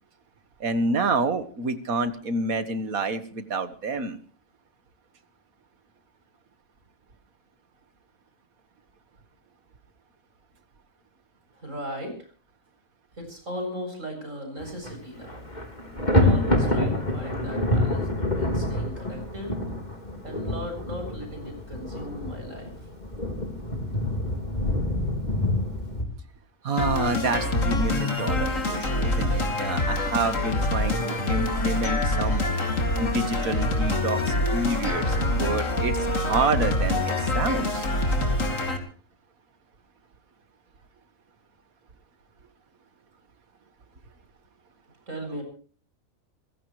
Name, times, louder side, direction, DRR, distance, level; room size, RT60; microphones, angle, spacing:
voice 1, 0.6-4.2 26.6-32.4 33.0-37.9, right 3 dB, 90° right, 11 dB, 2.0 m, -28 dB
voice 2, 11.6-12.3 13.2-15.5 16.1-19.5 20.2-22.9 45.1-45.4, equal, 65° right, 4 dB, 8.1 m, -37 dB
Thunder, 14.6-14.9 15.2-26.0, left 1 dB, 30° left, 3.7 m, -27 dB
sound 1, 26.8-38.8, left 1 dB, 65° left, 3.2 m, -25 dB
27.0 x 16.5 x 3.2 m, 0.41 s
omnidirectional pair, 1.4 m